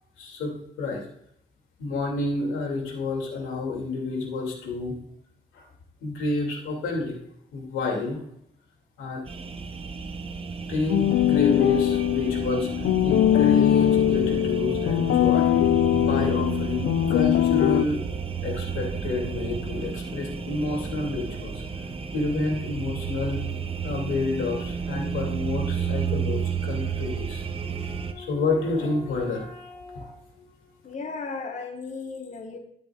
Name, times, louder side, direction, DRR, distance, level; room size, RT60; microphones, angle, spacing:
voice 1, 0.2-1.1 1.8-5.0 5.5-5.7 6.0-7.2 7.5-8.2 9.0-9.2 10.7-15.5 15.9-18.0 18.4-21.6 22.1-23.4 23.8-30.5, left 3 dB, 85° left, 1 dB, 2.5 m, -29 dB
sound 1, 9.3-28.1, right 6 dB, 30° right, 0.8 m, -32 dB
sound 2, 10.9-17.8, left 12 dB, 70° left, 0.4 m, -21 dB
voice 2, 30.8-32.6, left 4 dB, 35° left, 3 dB, 1.4 m, -35 dB
12.5 x 7.5 x 2.4 m, 0.73 s
cardioid pair, 90°, 20 cm